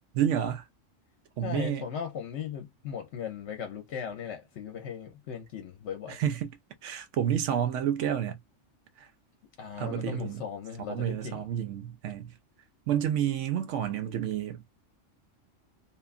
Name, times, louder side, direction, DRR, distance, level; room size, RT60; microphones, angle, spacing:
voice 1, 0.1-0.6 1.4-1.9 6.1-6.5 6.8-8.4 9.0-9.1 9.8-10.4 10.9-12.3 12.9-14.6, right 10 dB, 70° right, 0.9 m, -29 dB
voice 2, 1.4-6.2 9.6-11.4, left 7 dB, 65° left, 0.9 m, -38 dB
2.9 x 2.2 x 2.4 m
omnidirectional pair, 1.3 m